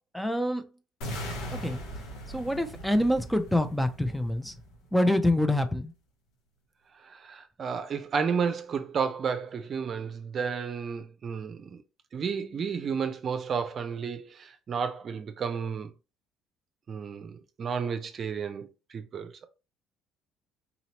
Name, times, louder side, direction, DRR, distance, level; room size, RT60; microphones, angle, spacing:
voice 1, 0.1-0.7 1.5-1.8 2.3-4.6 4.9-5.9, left 1 dB, 5° left, 0.6 m, -26 dB
sound 1, 1.0-5.0, equal, 70° left, 1.4 m, -39 dB
voice 2, 7.0-11.8 12.1-15.9 16.9-19.5, right 6 dB, 45° right, 0.6 m, -32 dB
4.1 x 2.9 x 2.9 m
hypercardioid pair, 65°, 0 cm